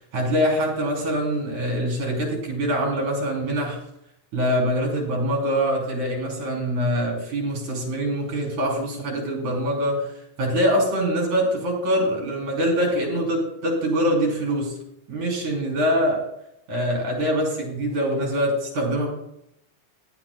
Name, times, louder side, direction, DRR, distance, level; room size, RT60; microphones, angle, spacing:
voice 1, 0.1-3.8 4.3-10.1 10.4-14.8 15.1-16.2 16.7-19.1, equal, 80° right, 0 dB, 4.8 m, -24 dB
19.5 x 11.5 x 2.2 m, 0.78 s
omnidirectional pair, 3.3 m